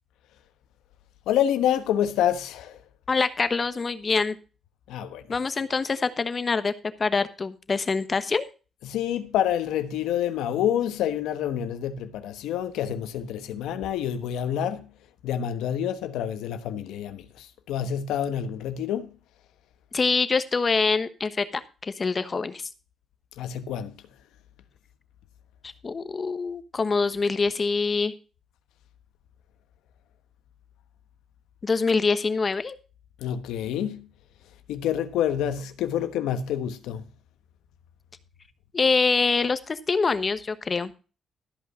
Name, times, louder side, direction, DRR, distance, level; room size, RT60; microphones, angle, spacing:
voice 1, 1.3-2.8 4.9-5.3 8.8-14.9 15.2-19.1 23.4-24.0 33.2-34.1 34.7-37.0, left 10 dB, 90° left, 1.1 m, -27 dB
voice 2, 3.1-4.4 5.3-6.7 7.0-8.4 19.9-22.7 25.6-28.1 31.6-32.7 38.7-40.9, left 4 dB, 35° left, 1.1 m, -25 dB
13.5 x 5.5 x 6.3 m
cardioid pair, 90°, 0 cm